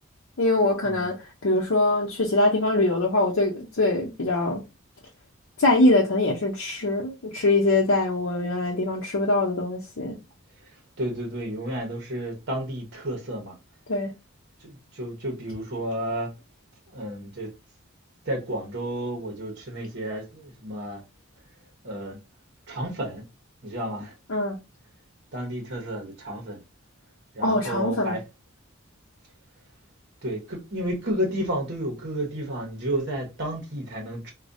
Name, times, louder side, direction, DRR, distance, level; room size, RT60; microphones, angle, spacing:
voice 1, 0.4-4.6 5.6-10.2 13.9-14.1 24.3-24.6 27.4-28.2, left 2 dB, 65° left, 0.7 m, -23 dB
voice 2, 11.0-13.6 14.6-16.3 16.9-17.5 18.2-21.0 21.8-22.2 22.7-23.2 23.6-24.1 25.3-26.6 27.3-28.2 30.2-34.3, right 1 dB, 50° right, 0.9 m, -31 dB
4.8 x 2.2 x 2.6 m
head